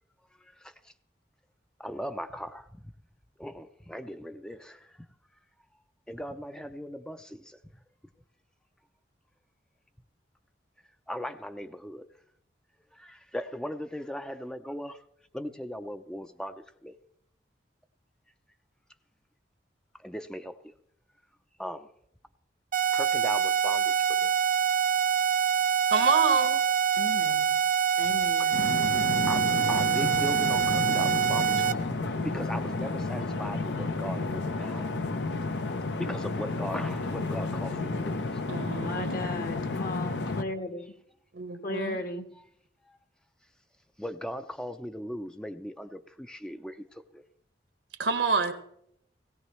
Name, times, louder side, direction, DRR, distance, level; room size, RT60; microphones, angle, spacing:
voice 1, 1.8-2.6 3.4-4.8 6.1-7.4 11.1-12.1 13.0-15.0 15.3-16.5 16.8-16.9 20.0-20.5 21.6-21.9 22.9-23.9 24.2-24.3 29.3-31.8 32.2-34.8 36.0-38.2 44.0-46.8 47.1-47.2, equal, 5° left, 0.5 m, -38 dB
sound 1, 22.7-31.7, right 8 dB, 50° right, 0.7 m, -25 dB
voice 2, 25.9-26.6 38.5-39.2 41.3-42.0 48.0-48.5, right 5 dB, 85° right, 1.4 m, -27 dB
voice 3, 26.9-27.6 28.0-28.6 28.9-29.0 38.7-40.9 41.6-42.3, left 2 dB, 55° left, 1.3 m, -36 dB
sound 2, 28.5-40.4, left 3 dB, 80° left, 0.8 m, -31 dB
17.5 x 16.5 x 3.1 m
head